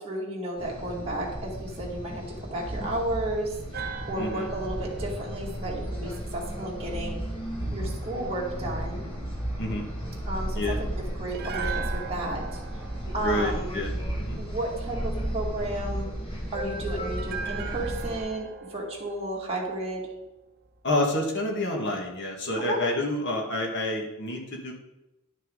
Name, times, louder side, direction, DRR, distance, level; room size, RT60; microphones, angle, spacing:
voice 1, 0.0-3.8 4.1-7.2 7.7-9.1 10.3-12.6 13.1-13.8 14.4-16.1 16.5-20.1 22.7-22.8, right 1 dB, 30° right, -4 dB, 2.1 m, -33 dB
sound 1, 0.6-18.2, right 1 dB, 25° left, 1.9 m, -34 dB
sound 2, 3.7-6.9 11.3-14.5 17.2-20.4 20.7-20.8, right 6 dB, 50° right, 0.8 m, -40 dB
voice 2, 4.2-4.5 9.6-9.9 10.5-10.8 13.2-13.9 14.2-14.4 20.8-24.7, left 1 dB, 55° left, 0 dB, 1.8 m, -28 dB
10.5 x 6.2 x 3.9 m, 0.96 s
head